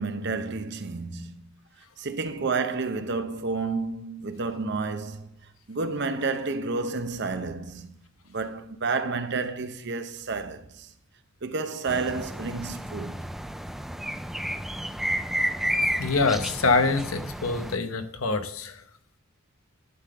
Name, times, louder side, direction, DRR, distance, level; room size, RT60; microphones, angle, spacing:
voice 1, 0.0-1.3 2.0-8.0 8.3-10.9 11.4-13.2, right 4 dB, 55° right, 0.7 m, -30 dB
sound 1, 11.9-17.8, equal, ahead, 0.3 m, -31 dB
voice 2, 16.0-18.8, left 3 dB, 90° left, 0.9 m, -25 dB
11.0 x 3.8 x 6.7 m
head